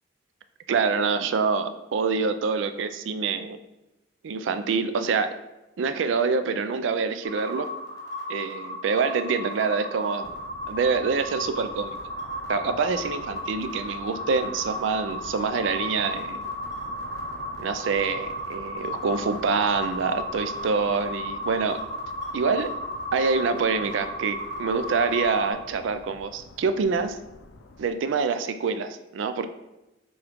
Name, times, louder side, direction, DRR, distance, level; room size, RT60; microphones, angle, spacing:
voice 1, 0.7-3.6 4.2-5.3 5.8-7.7 8.3-10.4 10.7-12.0 12.5-16.5 17.6-21.8 22.3-22.7 23.1-27.2 27.8-29.5, right 5 dB, 75° right, 10 dB, 0.4 m, -26 dB
sound 1, 7.2-25.5, equal, 20° left, 1.0 m, -34 dB
sound 2, 10.2-27.9, left 3 dB, 75° left, 0.4 m, -47 dB
6.0 x 2.3 x 3.6 m, 0.98 s
head